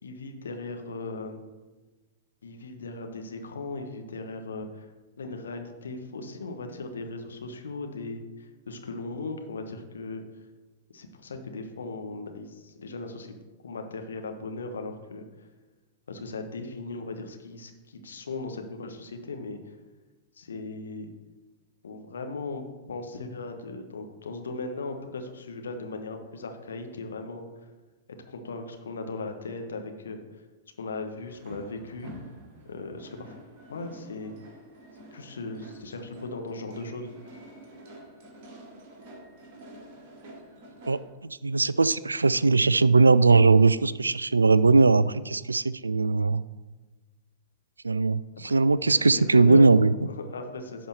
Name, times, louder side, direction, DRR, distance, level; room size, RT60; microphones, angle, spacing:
voice 1, 0.0-1.4 2.4-4.9 5.2-10.2 10.9-13.3 13.6-15.2 16.1-19.6 20.4-21.1 21.8-27.4 28.3-30.2 30.8-32.1 32.7-33.4 33.7-34.3 35.1-37.1 48.4-48.6 48.9-49.6 50.0-50.9, left 3 dB, 70° left, 5 dB, 1.2 m, -37 dB
sound 1, 31.2-41.1, right 1 dB, 45° right, 2.5 m, -48 dB
voice 2, 40.9-46.4 47.8-49.9, right 3 dB, 80° right, 18 dB, 0.3 m, -20 dB
11.0 x 4.3 x 6.7 m, 1.2 s
figure-of-eight pair, 100°, 0 cm